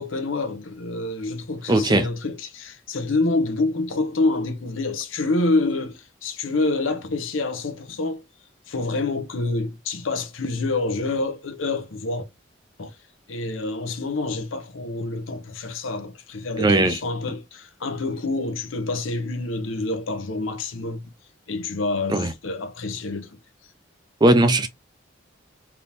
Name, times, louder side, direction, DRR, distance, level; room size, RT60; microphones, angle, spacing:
voice 1, 0.0-8.2 8.7-12.2 12.8-12.9 13.3-21.1 21.5-23.3, left 2 dB, 85° left, 0.7 m, -27 dB
voice 2, 1.7-2.1 16.6-17.0 22.1-22.3 24.2-24.7, right 1 dB, 20° right, 0.4 m, -18 dB
3.5 x 2.9 x 2.5 m
head